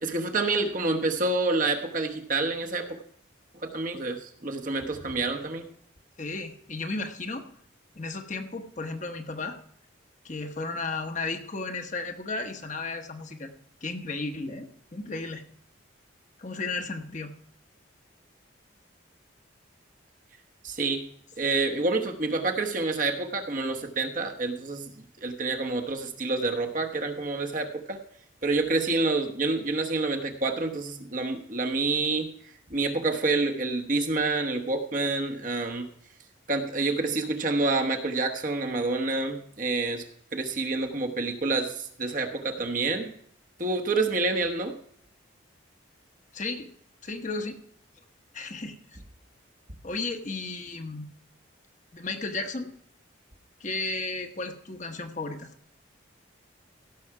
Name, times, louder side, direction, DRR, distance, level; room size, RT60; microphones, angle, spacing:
voice 1, 0.0-3.0 3.6-5.6 20.6-21.1 21.4-24.9 25.2-28.0 28.4-32.3 32.7-35.9 36.5-40.0 40.3-43.1 43.6-44.8, right 3 dB, 40° right, 3 dB, 1.1 m, -28 dB
voice 2, 6.2-7.5 8.0-9.6 10.2-13.5 13.8-15.4 16.4-17.3 46.3-46.7 47.0-47.6 48.3-49.0 49.8-51.1 51.9-52.7 53.6-55.5, left 3 dB, 40° left, 5 dB, 1.0 m, -34 dB
16.5 x 6.3 x 4.7 m, 0.66 s
head